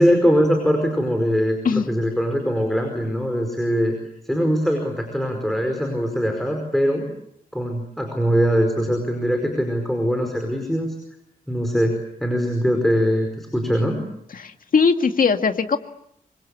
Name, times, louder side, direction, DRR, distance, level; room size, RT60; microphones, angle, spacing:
voice 1, 0.0-3.9 4.2-7.1 7.5-10.9 11.5-14.0, equal, ahead, 4 dB, 5.0 m, -21 dB
voice 2, 14.4-15.8, left 5 dB, 65° left, 7 dB, 2.1 m, -19 dB
27.0 x 24.5 x 8.5 m, 0.75 s
wide cardioid pair, 140°, 15 cm